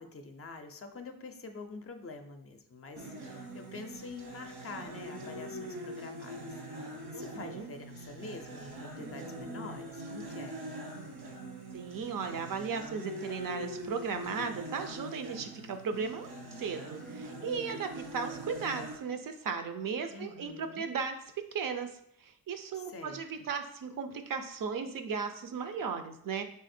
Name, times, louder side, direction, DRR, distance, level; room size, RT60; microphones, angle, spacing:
voice 1, 0.0-10.6 20.1-20.9 22.7-23.2, left 3 dB, 40° left, 6 dB, 0.4 m, -46 dB
sound 1, 3.0-19.0, right 1 dB, 80° right, 1.2 m, -43 dB
voice 2, 7.1-7.7 11.7-16.3 16.6-21.2 21.5-26.4, right 5 dB, 60° right, 8 dB, 0.5 m, -36 dB
3.7 x 3.3 x 4.2 m, 0.71 s
wide cardioid pair, 130°, 37 cm